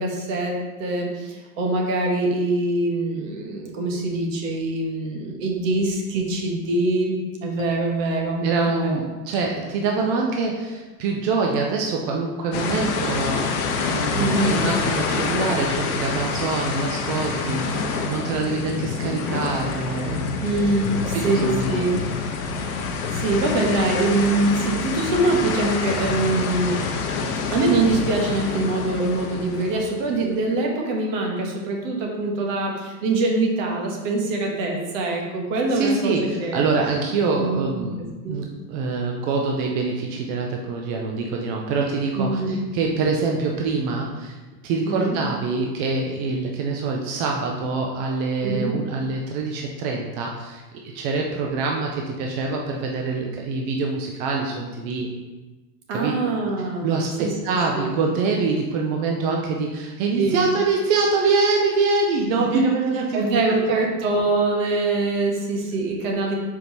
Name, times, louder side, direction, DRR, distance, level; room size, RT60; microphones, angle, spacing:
voice 1, 0.0-9.0 14.2-14.5 20.4-22.0 22.4-22.8 23.1-26.8 27.5-36.6 37.4-37.9 38.2-38.4 42.2-42.6 44.9-45.2 48.4-48.7 55.9-57.3 57.7-57.9 60.2-60.5 62.4-62.6 62.9-66.4, right 2 dB, 50° right, 1 dB, 1.4 m, -24 dB
sound 1, 7.6-11.2, right 5 dB, 35° left, 0.6 m, -42 dB
voice 2, 8.4-20.4 21.1-21.8 35.7-38.0 38.3-44.4 44.6-55.1 55.9-56.1 56.8-63.3, right 4 dB, 30° right, 0 dB, 0.4 m, -25 dB
sound 2, 12.5-30.3, left 4 dB, 60° left, 1.0 m, -27 dB
5.3 x 4.6 x 4.0 m, 1.2 s
supercardioid pair, 135°, 48 cm